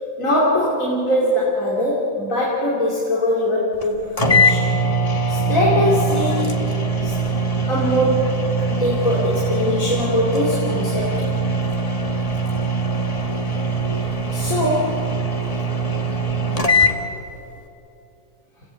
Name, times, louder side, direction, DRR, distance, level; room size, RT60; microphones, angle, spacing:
voice 1, 0.2-4.7 5.3-6.4 7.0-7.1 7.7-8.4 8.7-11.2 14.3-15.1, left 1 dB, 90° left, -5 dB, 3.5 m, -21 dB
sound 1, 3.8-3.9 4.2-17.0, right 2 dB, 30° left, 1.4 m, -21 dB
29.5 x 16.5 x 8.3 m, 2.9 s
omnidirectional pair, 1.4 m